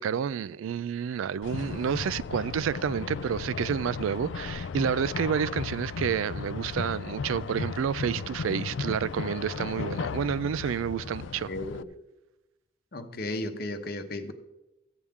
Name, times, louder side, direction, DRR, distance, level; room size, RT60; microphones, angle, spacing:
voice 1, 0.0-11.5, right 7 dB, 90° right, 0.3 m, -29 dB
sound 1, 1.4-11.8, left 5 dB, 70° left, 0.4 m, -35 dB
voice 2, 11.5-11.9 12.9-14.3, left 2 dB, 50° left, 0.9 m, -34 dB
14.0 x 8.4 x 3.6 m
head